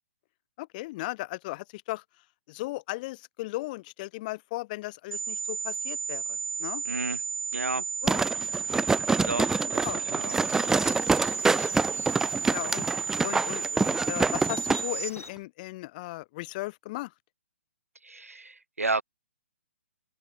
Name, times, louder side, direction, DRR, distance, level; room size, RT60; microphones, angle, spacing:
voice 1, 0.6-2.0 2.5-6.8 7.7-8.2 9.8-10.0 12.4-12.9 13.2-17.1, left 20 dB, 35° left, 4.3 m, -36 dB
sound 1, 5.1-15.1, right 6 dB, 70° right, 1.8 m, -33 dB
voice 2, 6.8-7.2 7.5-7.8 9.2-9.8 10.1-10.8 11.9-12.0 18.0-19.0, right 3 dB, 90° right, 3.3 m, -32 dB
sound 2, 8.1-14.8 15.2-15.3, right 4 dB, 5° right, 1.4 m, -26 dB
sound 3, 10.3-15.3, left 3 dB, 85° left, 4.1 m, -48 dB
open air
figure-of-eight pair, 130°, 7 cm